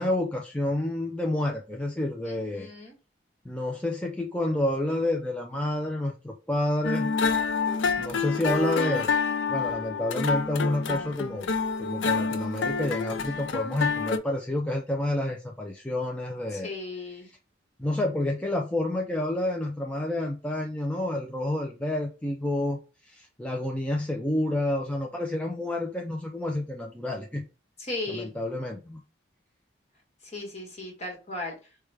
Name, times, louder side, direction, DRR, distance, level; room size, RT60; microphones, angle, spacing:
voice 1, 0.0-2.7 3.5-7.1 8.0-9.1 9.5-11.5 11.8-16.7 17.8-27.4 28.1-29.0, left 1 dB, 5° left, 0 dB, 0.3 m, -29 dB
voice 2, 2.2-2.9 16.5-17.3 27.8-28.3 30.2-31.5, left 2 dB, 35° left, 0 dB, 1.3 m, -36 dB
sound 1, 6.8-14.2, left 5 dB, 80° left, 0.4 m, -28 dB
4.7 x 2.2 x 3.3 m, 0.32 s
head